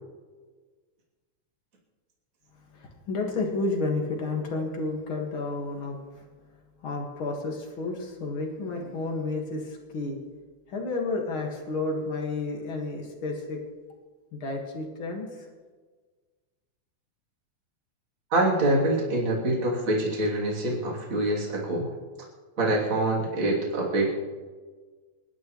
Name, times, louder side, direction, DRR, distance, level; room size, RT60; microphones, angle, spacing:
voice 1, 2.7-6.3 6.8-10.2 10.7-13.6 14.3-15.5, left 3 dB, 45° left, 1 dB, 2.3 m, -31 dB
voice 2, 18.3-21.9 22.6-24.1, right 1 dB, 40° right, -3 dB, 3.5 m, -25 dB
29.0 x 11.5 x 3.1 m, 1.4 s
omnidirectional pair, 3.5 m